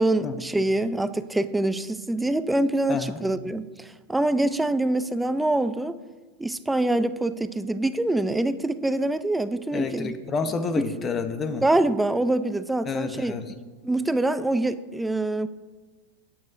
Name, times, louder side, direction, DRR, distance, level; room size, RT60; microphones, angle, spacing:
voice 1, 0.0-6.0 6.4-10.1 11.6-13.3 13.8-15.5, right 2 dB, 5° right, 0.5 m, -25 dB
voice 2, 2.9-3.2 9.7-11.6 12.9-13.5, left 4 dB, 30° left, 0.9 m, -29 dB
17.5 x 8.6 x 2.7 m
hypercardioid pair, 100°, 0 cm